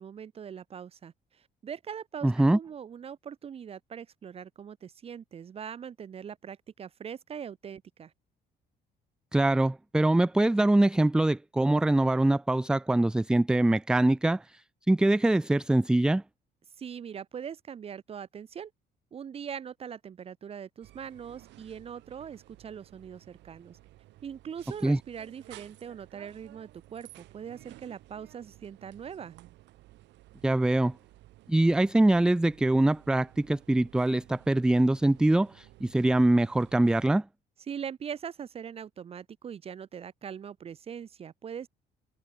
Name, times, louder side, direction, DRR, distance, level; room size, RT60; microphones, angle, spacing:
voice 1, 0.0-8.1 16.8-18.7 19.1-23.8 24.2-29.4 37.7-41.7, right 8 dB, 35° right, 2.3 m, -41 dB
voice 2, 2.2-2.6 9.3-14.6 14.9-16.2 24.8-25.0 30.4-30.9 31.5-37.2, right 1 dB, 5° right, 0.4 m, -23 dB
sound 1, 20.8-37.1, right 17 dB, 85° right, 3.4 m, -55 dB
cardioid pair, 175°, 18 cm